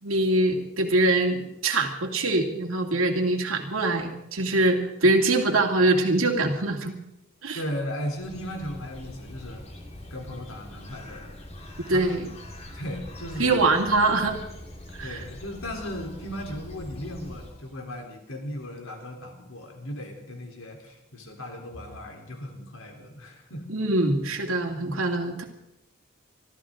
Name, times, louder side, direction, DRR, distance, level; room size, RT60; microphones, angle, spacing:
voice 1, 0.0-6.9 7.4-7.6 11.9-12.3 13.4-14.4 15.0-15.2 23.7-25.4, right 2 dB, 80° right, 2 dB, 2.5 m, -23 dB
voice 2, 7.5-9.7 10.1-11.3 11.9-12.2 12.7-13.7 15.0-23.7, equal, 85° left, 2 dB, 3.5 m, -36 dB
Bird, 8.0-17.9, left 1 dB, 30° left, 2.2 m, -43 dB
25.0 x 14.0 x 3.8 m, 0.85 s
head